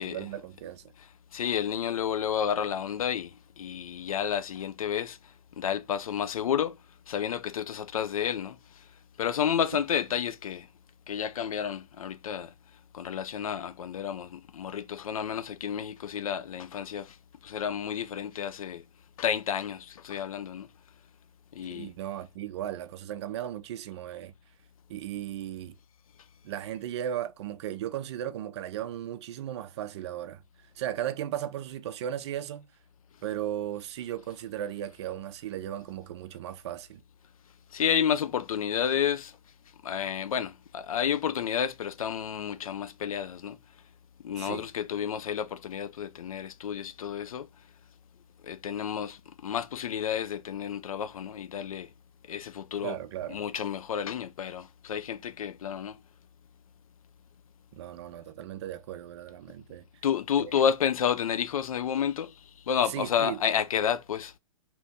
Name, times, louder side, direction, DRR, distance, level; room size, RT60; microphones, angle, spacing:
voice 1, 0.0-0.8 21.6-24.3 24.9-25.8 26.4-30.4 30.8-32.7 33.2-37.0 44.4-44.7 52.8-53.4 57.7-59.8 60.4-60.6 62.9-63.4, right 11 dB, 50° right, 0.5 m, -36 dB
voice 2, 1.0-5.2 5.6-6.8 7.1-8.6 9.2-10.7 11.1-12.5 12.9-17.2 17.4-18.8 19.2-20.7 21.5-21.9 37.7-39.3 39.8-43.6 44.2-47.5 48.4-51.9 52.3-53.0 53.3-56.0 60.0-62.3 62.7-64.3, left 8 dB, 75° left, 0.4 m, -30 dB
3.0 x 2.6 x 3.3 m
hypercardioid pair, 125°, 18 cm